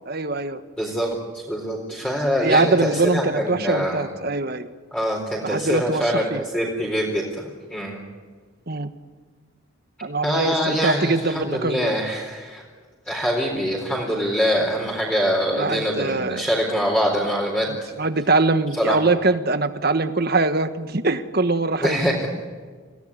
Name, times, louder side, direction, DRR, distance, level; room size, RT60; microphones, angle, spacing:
voice 1, 0.0-0.6 2.4-4.7 5.4-6.4 8.7-8.9 10.0-11.9 15.5-16.4 18.0-22.2, right 3 dB, 50° right, 10 dB, 1.4 m, -22 dB
voice 2, 0.8-4.1 4.9-8.0 10.2-12.6 13.1-17.7 18.8-19.0 21.8-22.3, equal, 5° left, -3 dB, 4.1 m, -24 dB
28.5 x 18.0 x 9.9 m, 1.5 s
head